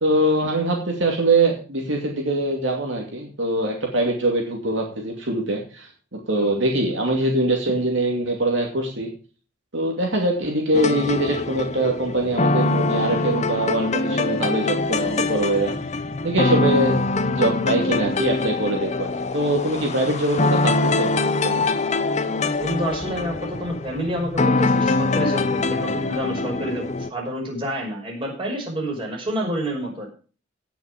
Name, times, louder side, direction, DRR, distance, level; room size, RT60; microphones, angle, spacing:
voice 1, 0.0-9.1 9.7-15.7 16.2-21.1 21.4-21.7, right 1 dB, 65° right, 1 dB, 2.5 m, -23 dB
sound 1, 10.7-27.1, left 3 dB, 35° left, 0.8 m, -23 dB
voice 2, 22.4-30.1, right 1 dB, 25° right, -2 dB, 5.8 m, -28 dB
18.0 x 6.3 x 5.1 m, 0.37 s
head